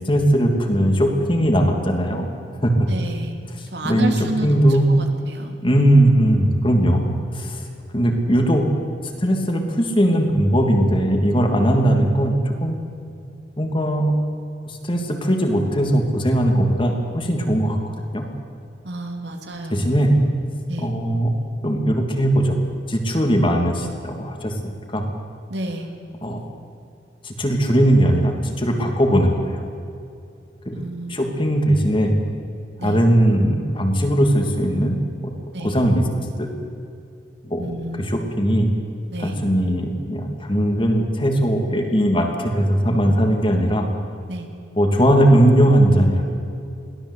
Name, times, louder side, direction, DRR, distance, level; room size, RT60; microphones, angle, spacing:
voice 1, 0.1-2.3 2.6-2.7 3.8-4.1 4.4-4.9 5.6-7.1 7.3-7.6 7.9-8.6 9.2-12.8 13.6-14.1 14.7-18.2 19.7-20.2 20.8-21.3 21.6-22.5 22.9-24.5 24.9-25.0 26.2-26.4 27.2-29.6 30.6-30.8 31.1-32.2 32.8-35.3 35.6-36.0 36.4-36.5 37.5-37.7 38.1-38.7 39.2-43.9 44.8-46.2, right 1 dB, 30° left, 3 dB, 2.9 m, -19 dB
voice 2, 2.9-3.3 3.7-5.5 18.8-19.9 20.7-20.9 25.5-25.9 30.7-31.3 32.8-33.0 35.5-35.8 37.6-38.1 39.1-39.4 44.3-44.5, right 1 dB, 70° right, 4 dB, 2.9 m, -31 dB
22.5 x 16.0 x 8.4 m, 2.6 s
head